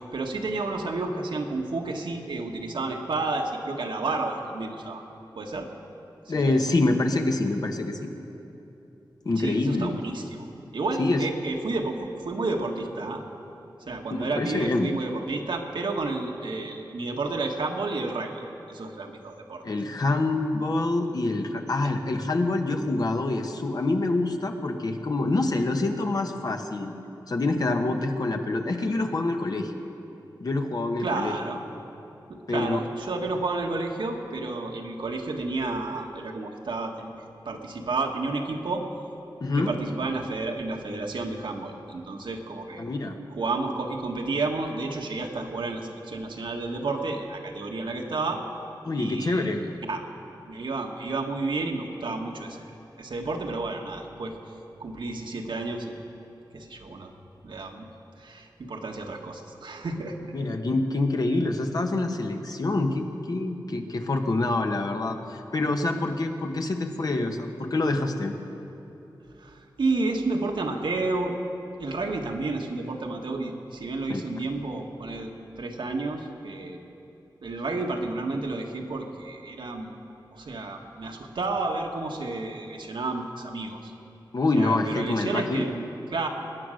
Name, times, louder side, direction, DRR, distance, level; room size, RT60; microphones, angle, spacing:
voice 1, 0.1-5.0 5.3-5.7 6.3-6.6 9.4-10.4 10.7-13.2 13.9-18.3 18.7-19.6 31.0-31.6 32.3-37.1 37.4-38.8 39.5-42.8 43.4-48.4 49.0-50.0 50.5-52.7 53.0-54.3 54.8-55.9 56.5-57.1 57.4-57.9 58.2-60.3 69.4-71.4 71.8-76.8 77.4-79.9 80.3-83.9 84.5-85.8 86.1-86.3, right 3 dB, 80° right, 2 dB, 1.5 m, -31 dB
voice 2, 6.3-8.1 9.2-10.0 11.0-11.2 14.1-14.9 19.6-26.9 27.3-29.7 30.4-31.3 32.5-32.8 39.4-39.7 42.8-43.2 48.8-49.6 60.3-68.4 74.1-74.2 84.3-85.7, left 2 dB, 55° left, 4 dB, 1.2 m, -26 dB
21.5 x 9.6 x 6.4 m, 2.9 s
wide cardioid pair, 110°, 8 cm